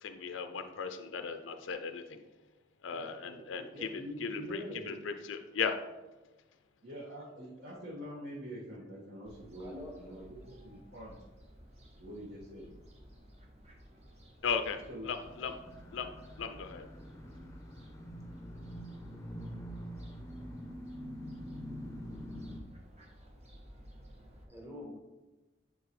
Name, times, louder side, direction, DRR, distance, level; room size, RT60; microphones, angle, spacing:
voice 1, 0.0-2.2 2.8-3.9 4.2-5.7 14.4-14.8 15.0-15.6 15.9-16.1 16.4-16.8, left 6 dB, 70° left, 8 dB, 0.5 m, -36 dB
voice 2, 2.9-4.9 6.8-11.2 12.0-12.7 14.9-15.1 15.6-15.8, equal, 60° right, -8 dB, 1.8 m, -45 dB
Fowl, 9.3-24.4, equal, 35° right, 1.2 m, -56 dB
voice 3, 9.6-9.9 22.3-22.6 23.0-23.2 24.5-25.0, left 1 dB, 10° right, 1 dB, 1.2 m, -47 dB
sound 1, 15.2-22.6, equal, 15° left, 0.6 m, -45 dB
10.5 x 3.9 x 3.2 m, 1.1 s
head